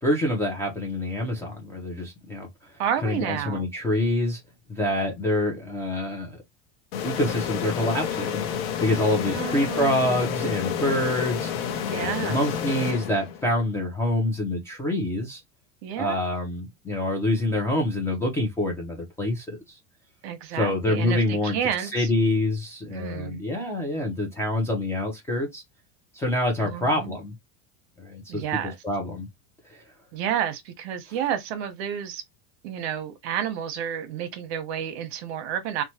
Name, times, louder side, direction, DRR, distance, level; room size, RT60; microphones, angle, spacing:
voice 1, 0.0-2.5 3.0-4.4 4.7-6.4 7.0-8.4 8.8-11.5 11.9-15.4 16.0-19.6 20.5-25.6 26.1-27.3 28.0-28.4 28.8-29.3 29.7-29.8, left 1 dB, 5° left, 0.5 m, -26 dB
voice 2, 2.8-3.7 9.3-10.3 11.9-12.4 15.8-16.2 20.2-22.1 22.9-23.4 26.6-27.2 28.3-28.8 30.1-32.2 32.6-35.8, right 9 dB, 60° right, 0.8 m, -30 dB
sound 1, 6.9-13.6, left 8 dB, 55° left, 0.7 m, -29 dB
3.0 x 2.2 x 2.7 m
supercardioid pair, 160°, 36 cm